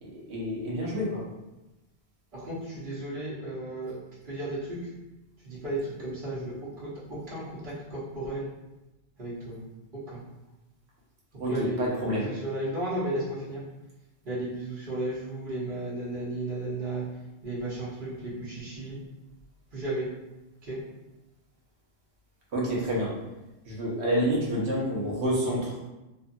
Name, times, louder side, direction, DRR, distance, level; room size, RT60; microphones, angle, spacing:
voice 1, 0.0-1.2 6.3-6.4 11.4-12.3 22.5-23.2 23.6-25.8, equal, 90° right, -5 dB, 1.1 m, -28 dB
voice 2, 2.3-3.9 4.3-4.8 5.4-8.5 9.2-9.6 9.9-10.2 11.5-11.8 12.2-13.6 14.2-17.0 17.4-19.0 19.7-20.1 20.6-20.8, right 1 dB, 55° right, -7 dB, 1.1 m, -34 dB
2.7 x 2.4 x 2.5 m, 1.0 s
omnidirectional pair, 1.1 m